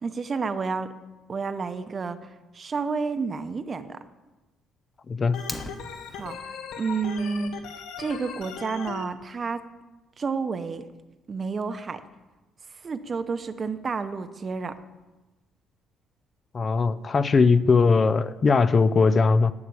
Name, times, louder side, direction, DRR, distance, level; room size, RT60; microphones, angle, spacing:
voice 1, 0.0-0.9 1.3-4.0 6.1-6.4 6.8-7.6 8.0-9.6 10.2-10.8 11.3-12.0 12.8-14.8, right 4 dB, 30° right, 11 dB, 0.8 m, -30 dB
voice 2, 5.1-5.5 16.5-19.5, left 4 dB, 30° left, 14 dB, 0.4 m, -20 dB
Organ, 5.3-9.0, left 6 dB, 80° left, 1.4 m, -38 dB
Fire, 5.3-6.3, left 2 dB, 15° left, 1.0 m, -38 dB
12.0 x 8.2 x 8.3 m, 1.1 s
cardioid pair, 125°, 0 cm